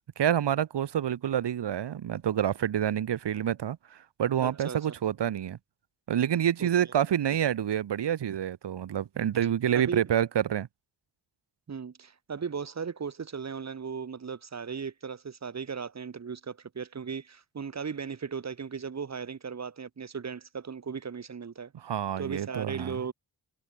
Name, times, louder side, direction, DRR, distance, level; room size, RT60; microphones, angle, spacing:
voice 1, 0.2-5.6 6.1-10.7 21.8-23.0, right 10 dB, 85° right, 1.3 m, -28 dB
voice 2, 4.4-4.9 6.6-6.7 9.1-9.2 9.7-10.0 11.7-21.7 22.2-23.1, right 6 dB, 40° right, 1.5 m, -37 dB
wide cardioid pair, 175°, 41 cm